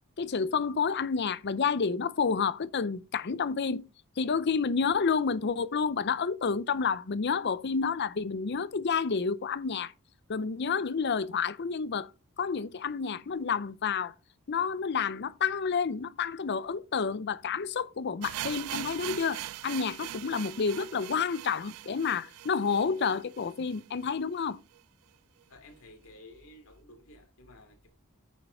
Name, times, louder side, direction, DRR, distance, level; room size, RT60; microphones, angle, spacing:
voice 1, 0.2-3.9 4.2-9.9 10.3-12.1 12.4-14.1 14.5-24.6, left 5 dB, 50° left, 0.6 m, -29 dB
sound 1, 18.2-24.1 24.4-24.5 24.7-24.8 25.4-25.5, right 13 dB, 90° right, 0.3 m, -41 dB
voice 2, 25.5-27.9, left 1 dB, 65° left, 2.8 m, -53 dB
9.6 x 5.6 x 4.1 m
head